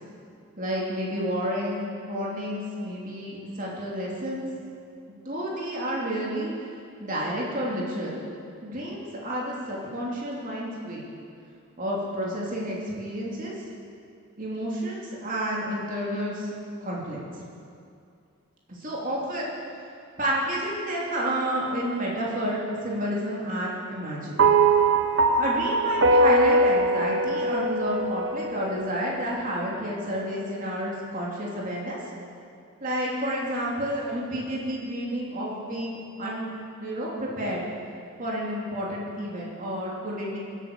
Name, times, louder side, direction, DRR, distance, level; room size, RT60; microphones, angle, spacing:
voice 1, 0.6-4.5 5.2-6.5 7.0-8.2 8.6-11.1 11.8-13.5 14.4-16.5 16.8-17.4 18.7-19.5 20.2-24.4 25.4-32.0 32.8-36.5 36.8-37.7 38.2-40.4, equal, 40° right, -4 dB, 3.0 m, -30 dB
sound 1, 24.4-28.8, right 2 dB, 55° right, 1.0 m, -21 dB
24.5 x 8.4 x 6.8 m, 2.4 s
head